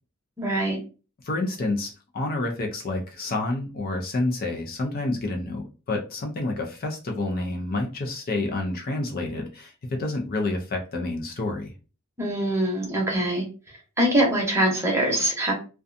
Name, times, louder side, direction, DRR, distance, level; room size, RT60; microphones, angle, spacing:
voice 1, 0.4-0.8 12.2-13.4 14.0-15.5, right 1 dB, 15° right, -2 dB, 0.9 m, -23 dB
voice 2, 1.2-11.7, left 2 dB, 45° left, 2 dB, 0.5 m, -29 dB
2.5 x 2.2 x 2.5 m, 0.34 s
head